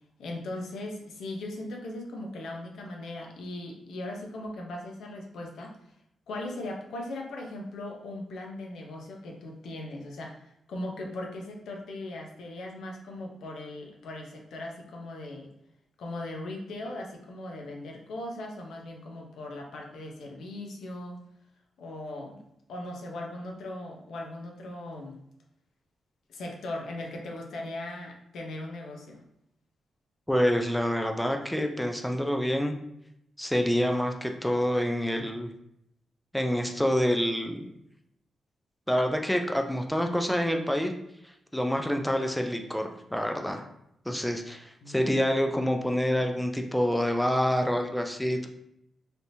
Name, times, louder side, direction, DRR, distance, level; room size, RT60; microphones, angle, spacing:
voice 1, 0.2-5.7 6.3-15.5 16.0-21.2 21.8-22.4 22.7-25.2 26.3-29.2 44.8-45.1, left 1 dB, 90° left, 1 dB, 0.7 m, -39 dB
voice 2, 30.3-32.7 33.4-35.5 36.3-37.7 38.9-40.9 41.2-43.6 44.1-48.5, equal, 5° left, 4 dB, 0.3 m, -27 dB
3.3 x 2.8 x 2.7 m, 0.79 s
cardioid pair, 110°, 0 cm